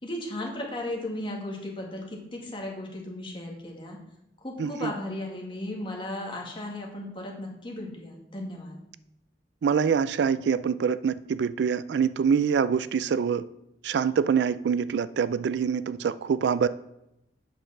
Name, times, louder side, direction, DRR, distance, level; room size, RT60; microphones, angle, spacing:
voice 1, 0.0-4.0 4.4-8.8, left 1 dB, 30° left, -1 dB, 1.9 m, -35 dB
voice 2, 4.6-4.9 9.6-13.4 13.8-16.7, right 6 dB, 70° right, 16 dB, 0.3 m, -25 dB
8.7 x 5.2 x 6.0 m, 0.87 s
head